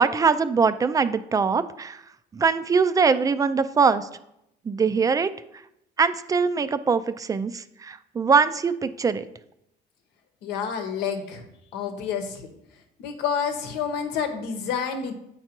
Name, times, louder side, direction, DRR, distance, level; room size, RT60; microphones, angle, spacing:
voice 1, 0.0-2.0 2.3-4.1 4.6-5.6 6.0-9.3, right 5 dB, 20° right, 12 dB, 0.3 m, -22 dB
voice 2, 10.4-11.4 11.7-12.5 13.0-15.1, left 7 dB, 85° left, 6 dB, 0.9 m, -29 dB
8.6 x 4.6 x 2.9 m, 0.81 s
cardioid pair, 110°, 17 cm